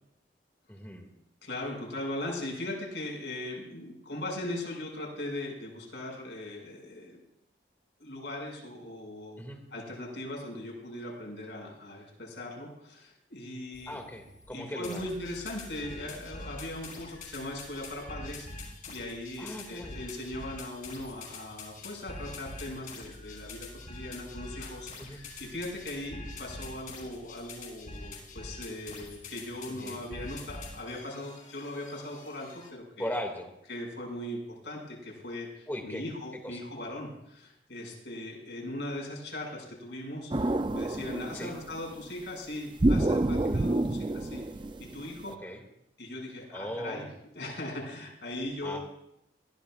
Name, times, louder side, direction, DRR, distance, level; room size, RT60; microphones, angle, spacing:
voice 1, 0.7-1.1 9.4-9.6 13.9-15.0 19.4-20.0 25.0-25.2 29.7-30.0 33.0-33.5 35.7-36.0 36.4-36.6 41.3-41.6 45.3-45.6 46.5-47.1 48.6-48.8, equal, 10° left, 2 dB, 2.2 m, -38 dB
voice 2, 1.4-7.2 8.0-9.4 9.7-14.0 14.5-33.1 33.7-44.4 44.8-45.4 46.0-47.0 47.3-48.8, left 1 dB, 70° left, -2 dB, 6.3 m, -39 dB
sound 1, 13.7-14.5 14.8-32.7, left 2 dB, 50° left, 4.9 m, -45 dB
sound 2, 40.3-41.8 42.8-45.2, right 2 dB, 25° right, 0.4 m, -28 dB
22.0 x 15.5 x 2.5 m, 0.82 s
head